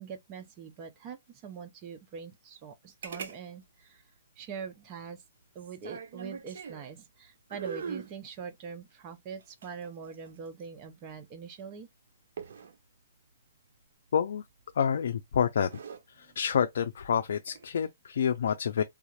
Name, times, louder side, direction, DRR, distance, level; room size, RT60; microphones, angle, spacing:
voice 1, 0.0-4.0 4.4-5.2 5.5-11.9 16.2-16.4, right 6 dB, 25° right, 0.7 m, -43 dB
sound 1, 3.0-3.4 3.6-3.7 5.6-6.9 7.5-8.1 9.4-10.6 12.4-12.7 14.6-15.0 15.5-16.0 17.3-17.7, right 6 dB, 65° right, 0.7 m, -41 dB
voice 2, 14.1-14.4 14.8-15.7 16.2-18.8, left 7 dB, 65° left, 0.4 m, -28 dB
3.4 x 2.4 x 3.1 m
hypercardioid pair, 160°, 0 cm